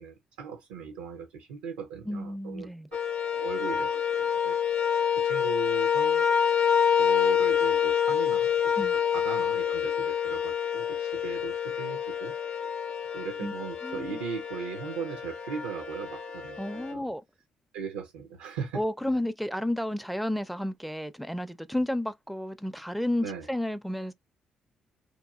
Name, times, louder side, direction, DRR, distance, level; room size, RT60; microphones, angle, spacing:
voice 1, 0.0-3.0 3.3-4.9 5.2-6.3 7.0-8.5 8.8-12.3 13.1-17.1 17.7-18.8 23.2-23.5, right 6 dB, 85° right, 0.4 m, -38 dB
voice 2, 2.1-2.9 8.8-9.0 13.4-13.5 13.8-14.2 16.6-17.2 18.7-24.1, left 1 dB, ahead, 0.4 m, -31 dB
sound 1, 2.9-16.9, left 8 dB, 45° left, 0.6 m, -27 dB
3.0 x 2.3 x 2.2 m
hypercardioid pair, 50°, 2 cm